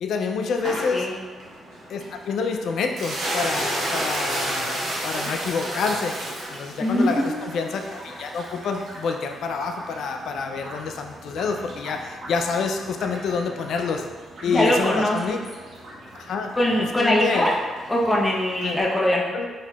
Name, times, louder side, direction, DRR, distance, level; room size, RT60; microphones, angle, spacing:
voice 1, 0.0-1.1 1.9-6.2 6.5-14.0 14.4-15.4 16.2-16.5 16.8-17.5 18.6-18.9 19.3-19.5, left 5 dB, 75° left, 4 dB, 0.3 m, -27 dB
sound 1, 0.6-18.8, right 1 dB, 70° right, 1.0 m, -34 dB
voice 2, 6.8-7.7 14.4-15.4 16.6-17.5 17.9-19.2, left 1 dB, 15° left, -3 dB, 0.7 m, -22 dB
4.1 x 2.8 x 2.3 m, 1.4 s
cardioid pair, 85°, 0 cm